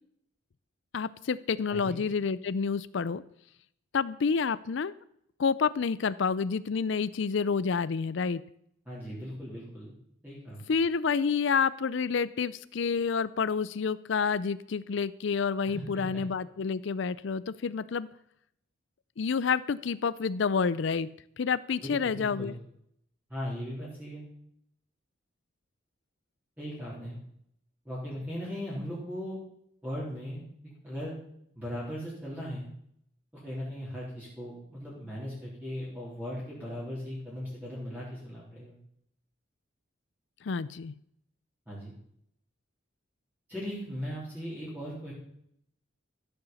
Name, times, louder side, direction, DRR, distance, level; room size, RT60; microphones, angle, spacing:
voice 1, 0.9-3.2 3.9-4.9 5.4-8.4 10.7-18.1 19.2-21.1 21.4-22.5 40.4-40.9, left 5 dB, 65° left, 16 dB, 0.4 m, -29 dB
voice 2, 1.7-2.0 8.9-10.0 10.2-10.6 15.6-16.2 21.8-22.6 23.3-24.2 26.6-27.2 27.9-29.4 29.8-31.1 31.5-32.7 33.3-38.7 41.7-41.9 43.5-45.1, equal, 10° right, -8 dB, 3.7 m, -38 dB
15.0 x 6.8 x 7.1 m, 0.72 s
head